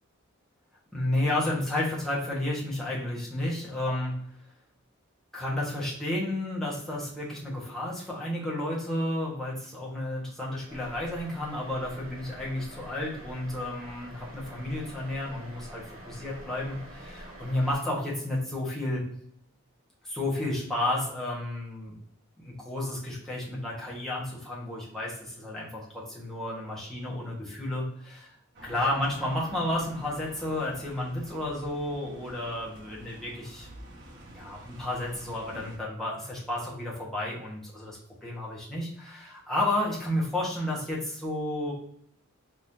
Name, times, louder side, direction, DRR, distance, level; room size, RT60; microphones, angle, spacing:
voice 1, 0.9-4.1 5.3-19.0 20.0-21.9 22.4-28.3 28.6-33.7 34.3-41.7, left 1 dB, ahead, -6 dB, 1.3 m, -32 dB
sound 1, 10.7-17.8, right 1 dB, 75° right, 1.4 m, -47 dB
sound 2, 28.5-35.8, right 1 dB, 55° right, 1.6 m, -48 dB
4.5 x 3.7 x 2.8 m, 0.65 s
head